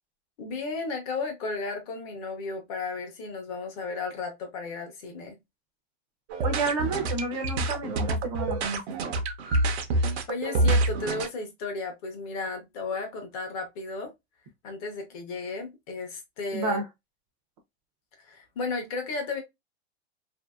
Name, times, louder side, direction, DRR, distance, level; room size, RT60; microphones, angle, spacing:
voice 1, 0.4-5.4 9.9-10.0 10.3-14.1 14.6-16.8 18.2-19.4, left 3 dB, 35° left, 0.7 m, -34 dB
sound 1, 6.3-11.3, right 2 dB, 70° right, 0.7 m, -27 dB
voice 2, 6.4-9.2 16.5-16.8, right 3 dB, 30° right, 0.5 m, -31 dB
2.7 x 2.5 x 2.3 m
supercardioid pair, 165°, 33 cm